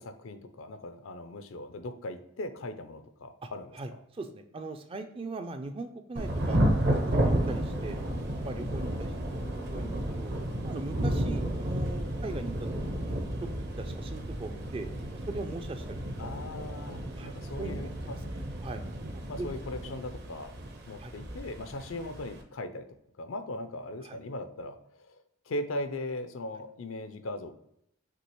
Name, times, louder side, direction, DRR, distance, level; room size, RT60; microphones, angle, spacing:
voice 1, 0.0-3.8 16.2-18.2 19.3-20.5 20.9-22.9 23.2-27.5, left 1 dB, 70° left, 9 dB, 0.5 m, -39 dB
voice 2, 3.7-9.1 9.4-10.3 10.6-13.0 13.4-13.5 13.8-14.9 15.3-16.0 17.2-18.2 18.6-18.8 19.1-19.5 21.0-21.1 24.0-24.2, right 3 dB, 25° right, 8 dB, 0.3 m, -40 dB
Thunder / Rain, 6.2-22.4, right 1 dB, 50° right, 0.7 m, -32 dB
6.0 x 2.8 x 3.0 m, 0.77 s
head